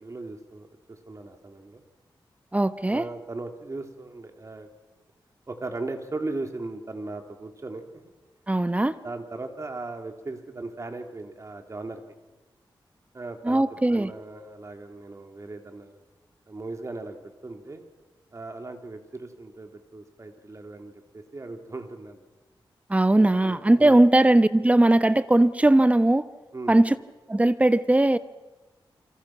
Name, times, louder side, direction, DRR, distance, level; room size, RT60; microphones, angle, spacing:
voice 1, 0.0-1.8 2.8-4.7 5.5-8.1 9.0-12.0 13.1-13.6 13.9-16.0 16.5-17.9 18.3-22.2 23.3-24.0 26.5-26.8, right 2 dB, 35° right, 5 dB, 3.1 m, -38 dB
voice 2, 2.5-3.0 8.5-9.0 13.4-14.1 22.9-26.3 26.7-27.0 27.3-28.2, right 1 dB, 15° right, 13 dB, 1.0 m, -19 dB
28.0 x 26.0 x 6.0 m, 1.1 s
wide cardioid pair, 90°, 8 cm